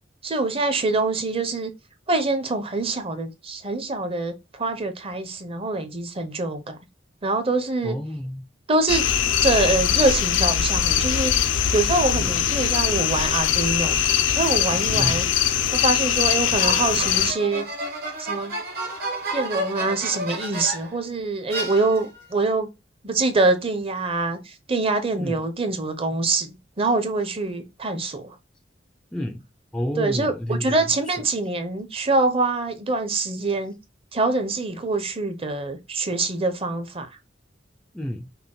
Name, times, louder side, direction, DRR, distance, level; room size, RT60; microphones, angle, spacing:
voice 1, 0.2-1.7 2.1-6.8 7.2-8.0 8.7-9.0 9.4-11.3 11.7-14.0 14.3-15.3 15.7-17.7 18.2-18.5 19.3-22.7 23.0-28.4 30.0-33.7 34.1-37.1, right 3 dB, 30° right, 0.7 m, -24 dB
voice 2, 7.8-8.5 12.2-12.4 14.9-15.2 25.2-25.4 29.1-29.5 29.7-31.2 37.9-38.3, left 1 dB, 5° left, 0.3 m, -30 dB
sound 1, 8.9-17.3, left 10 dB, 85° left, 0.4 m, -22 dB
sound 2, 16.6-21.0 21.5-22.3, right 2 dB, 55° right, 1.4 m, -31 dB
5.6 x 2.2 x 3.8 m
head